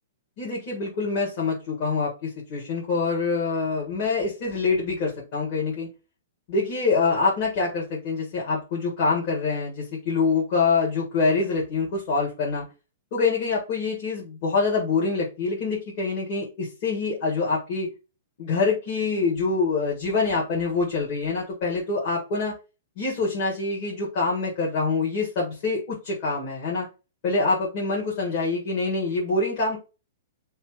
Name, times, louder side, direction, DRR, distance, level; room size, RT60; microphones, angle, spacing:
voice 1, 0.4-5.9 6.5-12.6 13.1-17.9 18.4-22.6 23.0-26.9 27.2-29.8, left 4 dB, 40° left, -4 dB, 1.7 m, -25 dB
3.3 x 3.0 x 4.7 m, 0.29 s
figure-of-eight pair, 105°, 0 cm